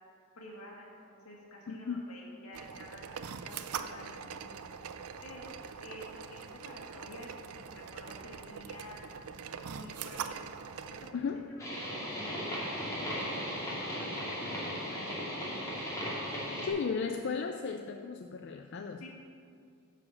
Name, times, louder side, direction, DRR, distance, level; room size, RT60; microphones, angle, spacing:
voice 1, 0.4-3.2 3.4-4.5 5.2-5.5 5.8-6.4 6.6-9.1 9.7-10.5 10.9-15.8 16.4-16.7 18.7-19.1, left 1 dB, 80° left, -2 dB, 2.1 m, -50 dB
voice 2, 1.7-2.0 11.1-11.5 16.6-19.1, left 5 dB, 50° left, 4 dB, 0.4 m, -35 dB
sound 1, 2.5-11.1, right 6 dB, 80° right, 0.5 m, -43 dB
sound 2, 11.6-16.7, equal, 15° left, 2.5 m, -36 dB
9.8 x 4.9 x 7.0 m, 2.3 s
head